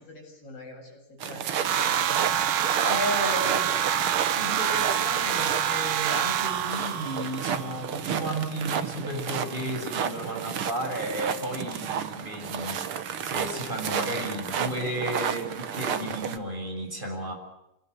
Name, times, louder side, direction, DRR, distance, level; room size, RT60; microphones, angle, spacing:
voice 1, 0.0-2.3, left 2 dB, 45° left, 1 dB, 8.6 m, -44 dB
sound 1, 1.2-16.4, right 8 dB, 55° right, 1.8 m, -32 dB
sound 2, 1.7-7.8, right 10 dB, 80° right, 2.9 m, -26 dB
voice 2, 2.8-3.7 4.4-12.9 13.2-17.3, right 1 dB, 15° right, 2 dB, 7.1 m, -33 dB
28.0 x 19.5 x 8.1 m, 0.87 s
omnidirectional pair, 3.8 m